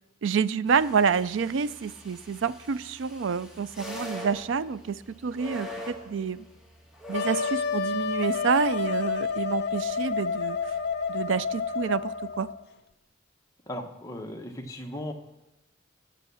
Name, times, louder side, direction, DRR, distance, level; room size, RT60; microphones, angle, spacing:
voice 1, 0.2-6.5 7.1-10.6 11.1-12.5, right 6 dB, 70° right, 17 dB, 0.4 m, -28 dB
sound 1, 0.7-12.5, left 1 dB, 5° right, 1.8 m, -45 dB
Wind instrument woodwind instrument, 7.1-12.6, left 5 dB, 60° left, 0.9 m, -29 dB
voice 2, 13.7-15.1, left 1 dB, 15° left, 3 dB, 1.1 m, -37 dB
14.5 x 7.5 x 6.9 m, 1.0 s
head